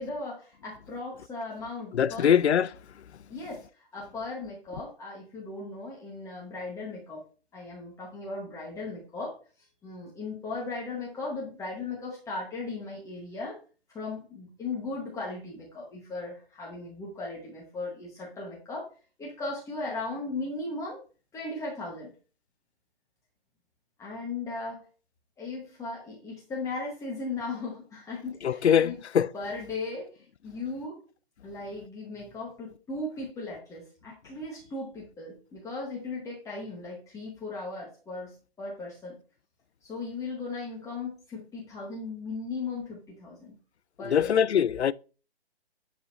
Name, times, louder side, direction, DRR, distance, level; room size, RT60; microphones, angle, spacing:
voice 1, 0.0-2.4 3.3-3.6 3.9-7.2 7.5-9.3 9.8-13.6 13.9-18.9 19.2-21.0 21.3-22.1 24.0-24.8 25.4-29.0 29.3-31.0 31.4-39.2 39.8-43.6 44.0-44.4, left 3 dB, 10° left, 1.5 m, -37 dB
voice 2, 1.9-2.7 28.4-29.3 44.0-44.9, left 8 dB, 80° left, 0.5 m, -22 dB
11.0 x 4.3 x 2.8 m
hypercardioid pair, 140°, 33 cm